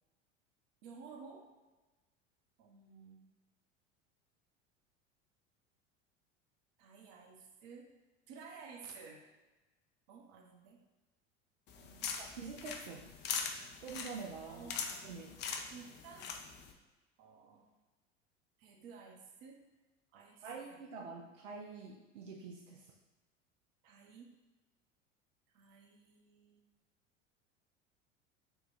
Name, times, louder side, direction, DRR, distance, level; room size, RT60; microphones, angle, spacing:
voice 1, 0.8-1.5 2.6-3.2 6.8-7.9 8.3-9.2 10.1-10.8 11.7-12.1 14.4-15.0 15.7-16.3 17.2-17.7 18.6-19.6 20.1-21.1 23.8-24.3 25.5-26.7, right 5 dB, 55° right, 2 dB, 0.8 m, -54 dB
sound 1, 11.7-16.7, left 6 dB, 30° left, 0.4 m, -42 dB
voice 2, 12.2-13.1 13.8-14.7 15.0-15.4 20.4-22.9, right 5 dB, 85° right, -1 dB, 0.5 m, -46 dB
3.9 x 2.2 x 3.8 m, 1.1 s
hypercardioid pair, 80°, 36 cm